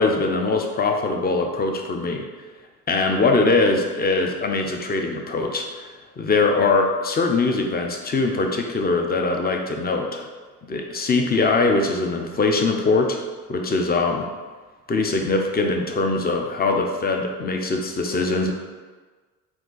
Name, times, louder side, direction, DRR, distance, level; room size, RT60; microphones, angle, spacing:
voice 1, 0.0-2.3 2.9-5.9 6.2-10.3 10.7-13.2 13.5-14.3 14.9-18.5, left 3 dB, 25° left, 3 dB, 0.6 m, -22 dB
4.6 x 2.7 x 3.9 m, 1.4 s
supercardioid pair, 60°, 40 cm